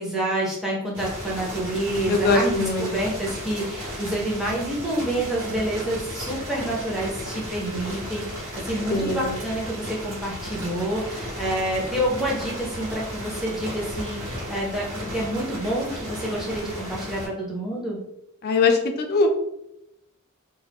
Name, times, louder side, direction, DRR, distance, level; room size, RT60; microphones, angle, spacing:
voice 1, 0.0-18.0, right 1 dB, ahead, -5 dB, 0.6 m, -28 dB
sound 1, 0.9-17.3, equal, 70° right, 1.2 m, -34 dB
voice 2, 2.1-2.9 8.9-9.4 18.4-19.3, left 3 dB, 45° left, 4 dB, 0.4 m, -21 dB
2.3 x 2.0 x 3.4 m, 0.83 s
head